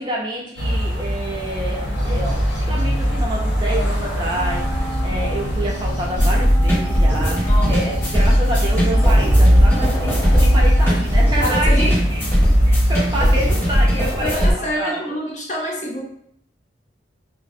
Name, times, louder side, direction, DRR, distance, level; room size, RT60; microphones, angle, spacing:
voice 1, 0.0-12.2 12.6-15.2, right 1 dB, 25° right, -2 dB, 0.3 m, -28 dB
sound 1, 0.6-13.9, equal, 80° left, 0.7 m, -21 dB
Wind instrument woodwind instrument, 4.3-12.0, right 1 dB, 75° right, 0.6 m, -36 dB
sound 2, 6.2-14.5, equal, 10° left, 0.8 m, -18 dB
voice 2, 7.4-8.1 11.4-12.0 14.0-16.0, equal, 40° left, -2 dB, 0.5 m, -27 dB
2.4 x 2.0 x 2.6 m, 0.68 s
head